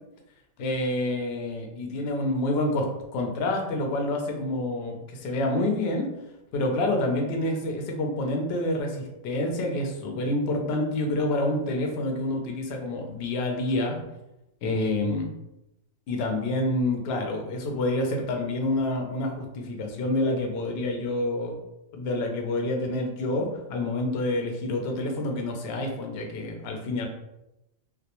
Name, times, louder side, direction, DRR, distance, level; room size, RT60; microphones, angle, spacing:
voice 1, 0.6-2.9 3.1-6.1 6.5-14.0 14.6-15.3 16.1-21.5 21.9-27.1, left 1 dB, 65° left, 2 dB, 0.7 m, -28 dB
2.2 x 2.2 x 2.8 m, 0.90 s
omnidirectional pair, 1.4 m